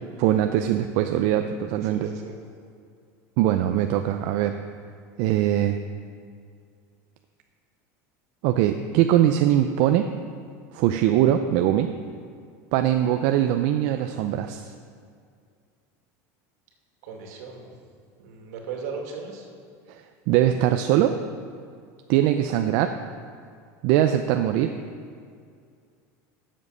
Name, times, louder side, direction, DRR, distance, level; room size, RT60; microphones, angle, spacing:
voice 1, 0.2-2.1 3.4-4.6 5.2-5.8 8.4-10.1 10.7-11.9 12.7-14.7 19.9-21.2 22.1-23.0 23.8-24.7, right 11 dB, 65° right, 7 dB, 0.6 m, -22 dB
voice 2, 1.8-2.3 17.0-17.7 18.2-19.5, right 5 dB, 80° right, 1 dB, 2.3 m, -37 dB
13.0 x 7.5 x 5.6 m, 2.3 s
supercardioid pair, 130°, 9 cm